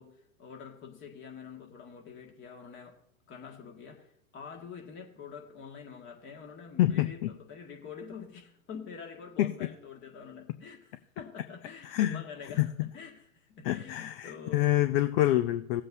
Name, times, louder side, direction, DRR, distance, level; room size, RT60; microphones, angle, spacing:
voice 1, 0.0-3.0 3.3-14.7, left 6 dB, 30° left, 2 dB, 2.0 m, -46 dB
voice 2, 6.8-7.3 9.4-9.5 11.8-12.2 12.6-12.7 13.6-15.8, left 14 dB, 45° left, 11 dB, 0.6 m, -26 dB
17.5 x 7.6 x 2.7 m, 0.65 s
hypercardioid pair, 120°, 41 cm